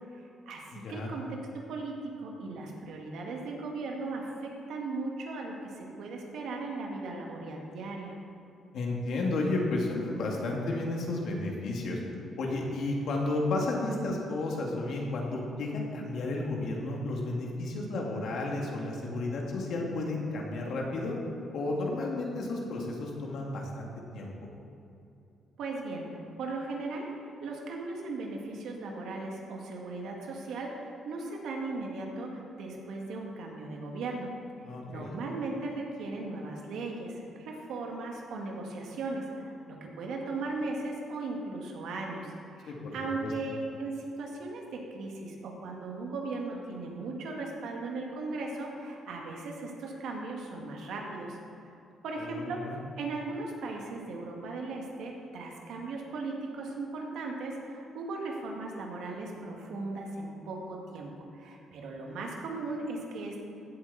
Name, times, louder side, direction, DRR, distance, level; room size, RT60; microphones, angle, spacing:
voice 1, 0.1-8.2 25.6-34.3 34.9-51.7 52.0-52.6 53.0-63.4, right 3 dB, 80° right, 0 dB, 2.0 m, -37 dB
voice 2, 0.7-1.1 8.7-12.0 12.4-21.2 21.5-24.3 34.6-35.1 42.7-42.9 43.2-43.3 52.2-52.8, left 2 dB, 70° left, -1 dB, 2.2 m, -32 dB
15.5 x 8.0 x 4.2 m, 2.7 s
cardioid pair, 90°, 0 cm